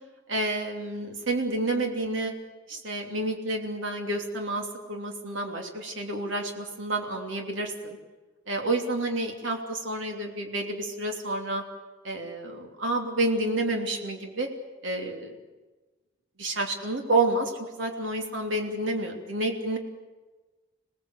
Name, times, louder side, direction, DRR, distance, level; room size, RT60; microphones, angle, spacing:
voice 1, 0.3-2.3 2.7-8.0 8.5-11.6 12.0-14.5 14.8-15.3 16.4-19.8, right 2 dB, 70° right, 2 dB, 3.1 m, -29 dB
28.0 x 19.0 x 8.2 m, 1.2 s
head